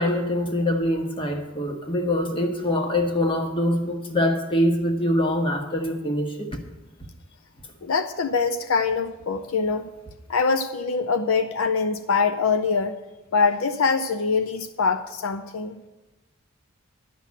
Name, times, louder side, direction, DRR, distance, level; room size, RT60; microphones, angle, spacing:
voice 1, 0.0-6.6, left 1 dB, 25° left, 4 dB, 1.2 m, -24 dB
voice 2, 7.8-9.9 10.3-13.0 13.3-15.8, left 5 dB, 65° left, 9 dB, 0.5 m, -24 dB
11.0 x 5.8 x 8.3 m, 1.1 s
head